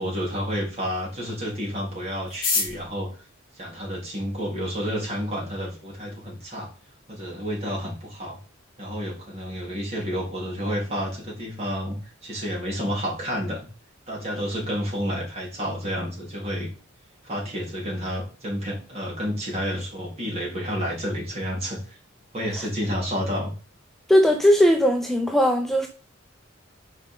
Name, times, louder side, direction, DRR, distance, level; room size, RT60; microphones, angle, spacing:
voice 1, 0.0-3.1 3.6-6.7 7.1-8.4 8.8-13.6 14.1-16.7 17.2-22.0 22.3-23.5, equal, 30° right, 3.5 m, -30 dB
sound 1, 2.2-4.5 5.3-5.4 5.6-5.7 6.0-6.5 6.8-6.9 7.1-7.5 7.8-8.0 8.3-8.6, left 4 dB, 45° left, 2.5 m, -30 dB
voice 2, 24.1-25.9, equal, ahead, 0.5 m, -19 dB
5.6 x 5.0 x 5.4 m
head